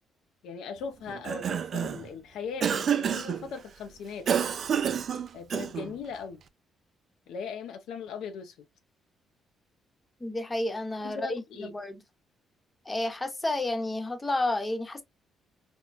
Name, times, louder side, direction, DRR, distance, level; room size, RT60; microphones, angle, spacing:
voice 1, 0.4-4.3 5.3-6.4 7.3-8.7 11.0-11.7, left 5 dB, 80° left, 0.5 m, -39 dB
Cough, 1.1-2.1 2.6-3.4 4.3-5.9, right 8 dB, 55° right, 0.4 m, -28 dB
voice 2, 10.2-12.0 12.8-15.0, left 2 dB, 20° left, 0.9 m, -31 dB
4.4 x 2.2 x 2.4 m
cardioid pair, 90°, 0 cm